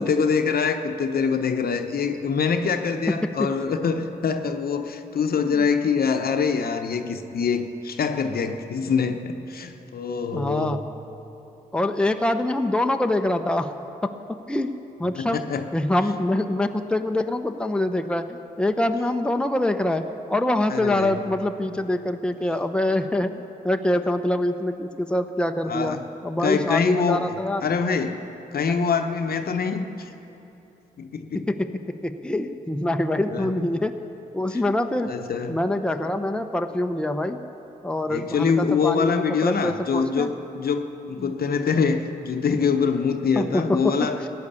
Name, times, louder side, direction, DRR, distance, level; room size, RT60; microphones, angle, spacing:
voice 1, 0.0-10.8 15.2-15.6 20.7-21.2 25.7-26.1 26.4-27.3 27.6-28.2 28.5-30.1 31.0-31.5 33.1-33.5 34.5-34.6 35.1-35.6 38.1-44.2, left 5 dB, 60° left, 7 dB, 0.9 m, -24 dB
voice 2, 3.1-3.5 5.5-5.6 10.3-10.8 11.7-13.7 14.0-14.2 14.5-14.7 15.0-15.4 15.7-27.7 31.3-34.0 34.3-35.1 35.5-37.4 37.8-40.3 41.2-41.3 43.4-44.1, left 1 dB, 5° left, 6 dB, 0.8 m, -25 dB
15.0 x 9.7 x 7.0 m, 3.0 s
supercardioid pair, 50°, 17 cm